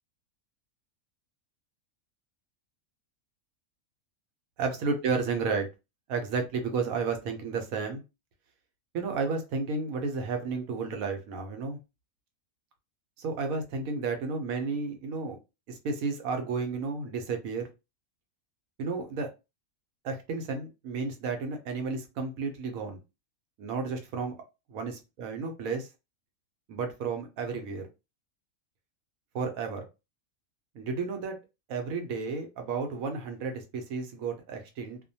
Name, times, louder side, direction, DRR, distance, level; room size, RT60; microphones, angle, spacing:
voice 1, 4.6-5.7 6.1-8.0 8.9-11.8 13.2-15.4 15.7-17.7 18.8-19.3 20.0-23.0 23.6-24.4 24.7-25.9 26.7-27.9 29.3-29.9 30.7-31.4 31.7-35.0, right 4 dB, 80° right, 1.0 m, -32 dB
2.5 x 2.1 x 2.6 m
omnidirectional pair, 1.5 m